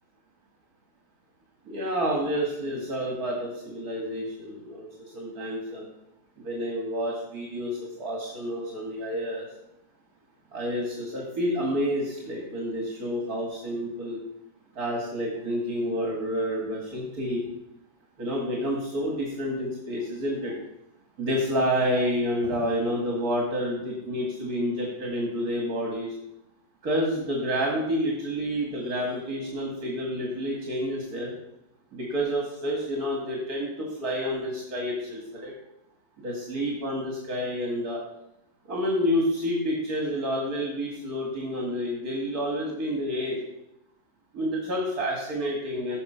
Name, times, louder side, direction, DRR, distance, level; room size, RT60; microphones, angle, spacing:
voice 1, 1.7-4.9 5.1-5.8 6.4-9.5 10.5-14.2 14.8-17.4 18.2-20.6 21.2-26.1 26.8-31.3 31.9-35.5 36.2-38.0 38.7-43.4 44.3-46.0, equal, 65° right, -1 dB, 2.6 m, -29 dB
16.0 x 6.0 x 5.7 m, 0.84 s
omnidirectional pair, 1.7 m